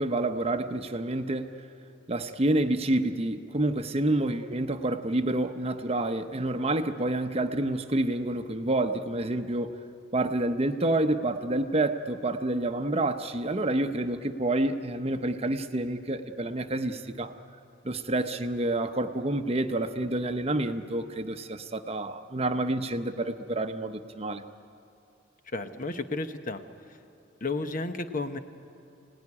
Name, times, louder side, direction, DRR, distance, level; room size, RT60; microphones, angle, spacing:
voice 1, 0.0-1.5 2.1-9.7 10.1-17.3 17.8-24.4, right 2 dB, 30° right, 8 dB, 0.8 m, -28 dB
voice 2, 25.5-26.6 27.4-28.4, left 3 dB, 45° left, 8 dB, 1.0 m, -32 dB
24.5 x 18.0 x 9.8 m, 2.7 s
head